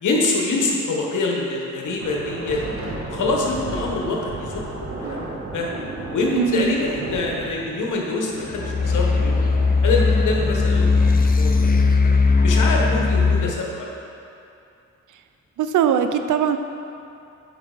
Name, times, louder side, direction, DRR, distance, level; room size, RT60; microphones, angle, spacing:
voice 1, 0.0-2.6 3.1-4.6 5.0-5.2 5.5-5.7 6.1-9.5 9.8-10.9 11.4-11.6 12.4-13.9, left 3 dB, 85° left, -1 dB, 1.2 m, -24 dB
sound 1, 2.0-11.1, right 2 dB, 50° right, 1.3 m, -33 dB
voice 2, 6.3-6.8 15.6-16.6, right 8 dB, 85° right, 8 dB, 0.5 m, -20 dB
sound 2, 8.5-13.5, left 4 dB, 30° left, 0.5 m, -18 dB
8.7 x 5.1 x 3.9 m, 2.7 s
cardioid pair, 70°, 30 cm